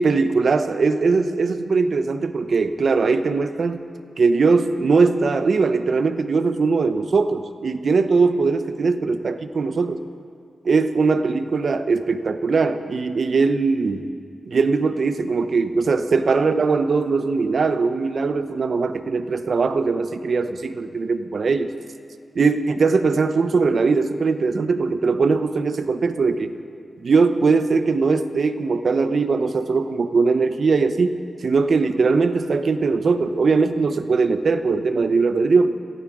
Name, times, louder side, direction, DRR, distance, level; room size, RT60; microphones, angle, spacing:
voice 1, 0.0-3.8 4.2-10.0 10.6-14.0 14.4-21.7 22.3-26.5 27.0-35.7, right 4 dB, 55° right, 10 dB, 0.7 m, -20 dB
17.5 x 15.5 x 4.9 m, 2.2 s
wide cardioid pair, 150°, 0 cm